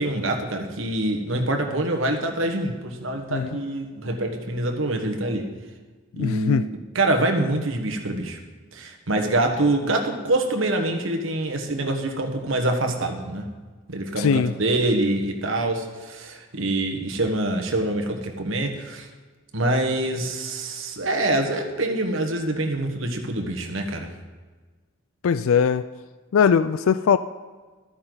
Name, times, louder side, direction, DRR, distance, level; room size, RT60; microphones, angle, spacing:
voice 1, 0.0-5.5 6.2-6.7 6.9-8.4 8.7-13.5 13.9-19.1 19.5-24.1, right 1 dB, 65° right, 4 dB, 1.4 m, -25 dB
voice 2, 6.2-6.6 14.2-14.5 25.2-25.8 26.3-27.2, left 6 dB, 70° left, 13 dB, 0.3 m, -20 dB
13.0 x 9.7 x 4.0 m, 1.4 s
head